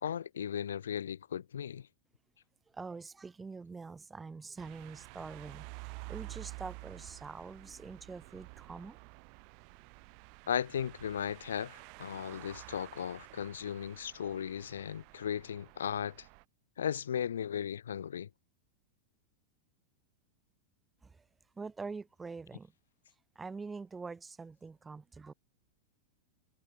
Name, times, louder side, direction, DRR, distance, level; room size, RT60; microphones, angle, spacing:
voice 1, 0.0-1.9 10.5-16.3 16.8-18.3, left 9 dB, 65° left, 0.5 m, -36 dB
voice 2, 2.7-9.0 21.0-21.3 21.6-22.7 23.3-25.3, right 4 dB, 15° right, 4.2 m, -45 dB
sound 1, 4.6-16.4, right 39 dB, 45° right, 4.1 m, -50 dB
figure-of-eight pair, 90°, 0 cm